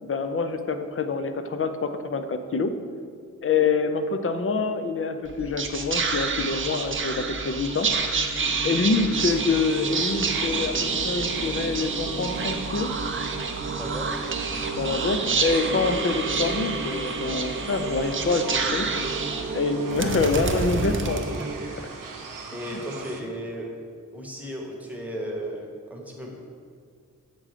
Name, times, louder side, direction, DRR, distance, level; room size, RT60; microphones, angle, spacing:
voice 1, 0.0-2.7 3.4-7.9 8.6-12.9 14.8-18.9 19.5-21.5 22.7-22.8 23.2-23.3, left 4 dB, 45° left, 8 dB, 0.5 m, -26 dB
Whispering, 5.2-21.8, right 4 dB, 40° right, 0.5 m, -28 dB
sound 1, 9.1-23.2, right 4 dB, 80° right, 0.7 m, -41 dB
voice 2, 13.8-14.1 22.5-23.7 24.1-26.4, equal, 5° right, -1 dB, 1.0 m, -35 dB
7.7 x 3.7 x 5.0 m, 2.1 s
wide cardioid pair, 105°, 32 cm